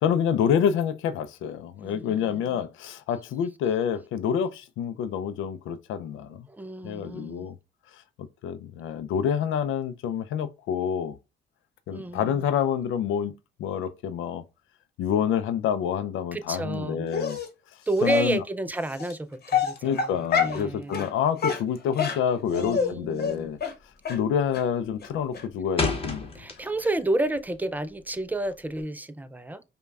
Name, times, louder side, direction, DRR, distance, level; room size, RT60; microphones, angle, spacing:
voice 1, 0.0-6.5 6.8-7.6 8.4-11.2 11.9-13.3 13.6-14.4 15.0-17.4 18.0-18.4 19.8-23.6 24.1-26.3, left 8 dB, 85° left, 0.5 m, -27 dB
voice 2, 1.8-2.6 6.5-7.5 11.9-12.5 16.3-17.1 17.9-21.1 22.5-23.5 26.3-29.6, right 1 dB, 10° right, 0.4 m, -30 dB
Dog, 17.1-17.5 18.1-18.2 19.0-19.1 19.5-20.6 20.9-21.1 21.4-22.9 23.2-23.3 23.6-23.7 24.1-24.2 24.5-24.6 25.0-25.1 25.3-25.4, left 7 dB, 50° left, 1.0 m, -26 dB
sound 1, 23.5-23.6 23.9-24.4 24.7-27.0 27.3-28.8, left 3 dB, 30° left, 1.1 m, -32 dB
5.2 x 2.3 x 2.3 m
cardioid pair, 90°, 20 cm